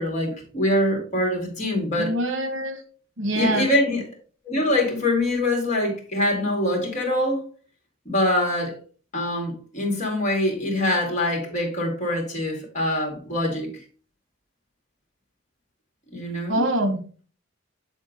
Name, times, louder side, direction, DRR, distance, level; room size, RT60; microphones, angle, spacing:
voice 1, 0.0-2.1 3.3-4.0 4.5-7.4 8.1-8.7 9.1-13.7 16.1-16.6, left 1 dB, 40° left, 2.1 m, -24 dB
voice 2, 2.0-2.8 3.2-3.7 16.5-17.0, right 1 dB, 70° right, 1.1 m, -24 dB
8.1 x 3.6 x 3.8 m
head